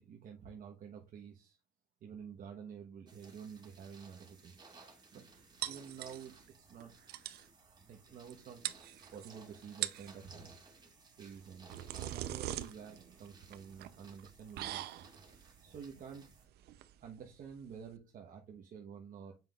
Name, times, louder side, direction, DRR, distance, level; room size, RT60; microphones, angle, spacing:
voice 1, 0.0-1.6 2.0-4.5 5.1-5.3 5.6-6.3 6.6-6.9 7.2-7.3 7.9-8.6 9.1-10.6 11.2-16.3 17.0-19.4, right 7 dB, 55° right, 1 dB, 1.2 m, -50 dB
sound 1, 3.1-16.4, right 3 dB, 25° right, 2.4 m, -59 dB
sound 2, 5.6-6.5 6.8-6.9 7.1-7.5 8.3-8.4 8.6-9.3 9.7-10.2 11.3-18.0, right 13 dB, 75° right, 0.7 m, -42 dB
7.4 x 5.6 x 2.4 m, 0.28 s
cardioid pair, 110°, 17 cm